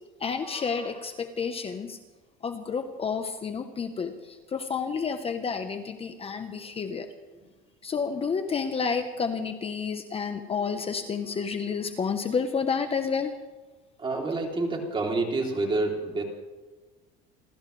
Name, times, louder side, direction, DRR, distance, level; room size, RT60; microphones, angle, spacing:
voice 1, 0.2-2.0 2.4-7.1 7.8-13.4, left 5 dB, 30° left, 7 dB, 1.1 m, -30 dB
voice 2, 14.0-16.2, right 2 dB, 25° right, 0 dB, 3.5 m, -28 dB
29.0 x 13.5 x 3.4 m, 1.3 s
cardioid pair, 125°, 21 cm